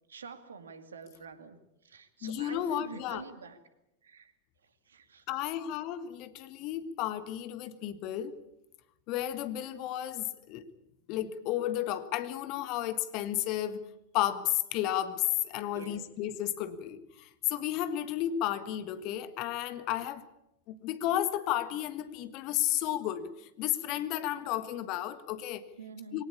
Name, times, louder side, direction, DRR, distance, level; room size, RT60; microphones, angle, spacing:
voice 1, 0.1-1.6 1.8-3.6 4.0-4.3 4.6-5.3 15.7-16.1 25.8-26.2, right 5 dB, 70° right, 9 dB, 2.3 m, -47 dB
voice 2, 2.2-3.2 5.3-8.3 9.1-10.7 11.1-13.8 14.1-20.2 20.7-25.7 26.1-26.2, left 12 dB, 40° left, 12 dB, 1.6 m, -33 dB
22.5 x 18.0 x 8.6 m, 0.88 s
figure-of-eight pair, 90°, 0 cm